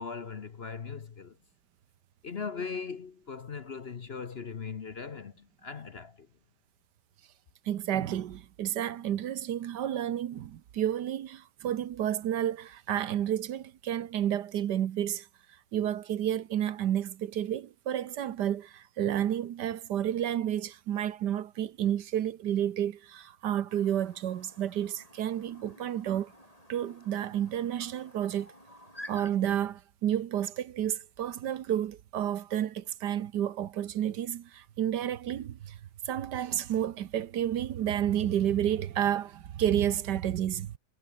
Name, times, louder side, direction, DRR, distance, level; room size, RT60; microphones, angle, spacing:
voice 1, 0.0-1.4 2.2-6.3, left 5 dB, 45° left, 1.0 m, -39 dB
voice 2, 7.7-15.3 15.7-26.3 26.7-28.5 29.1-35.7 36.0-40.8, right 10 dB, 75° right, 1.5 m, -31 dB
Chirp tweet, 23.7-29.3, left 1 dB, 20° left, 7.9 m, -51 dB
omnidirectional pair, 1.9 m